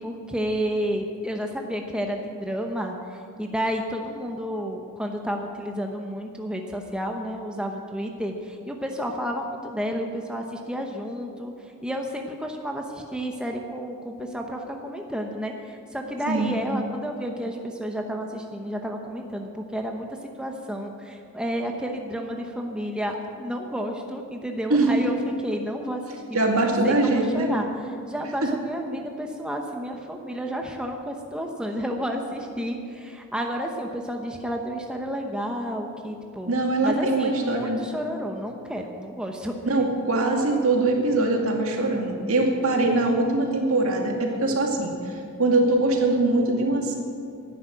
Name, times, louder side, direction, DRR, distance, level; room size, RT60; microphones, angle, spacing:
voice 1, 0.0-11.5 11.8-20.1 20.4-26.2 26.6-27.7 28.1-36.6 36.8-39.5, equal, 5° right, 2 dB, 0.9 m, -31 dB
voice 2, 24.7-25.1 26.3-27.5 28.4-28.5 36.5-37.8 39.7-46.9, right 2 dB, 65° right, 1 dB, 2.3 m, -22 dB
12.0 x 10.5 x 9.2 m, 2.4 s
head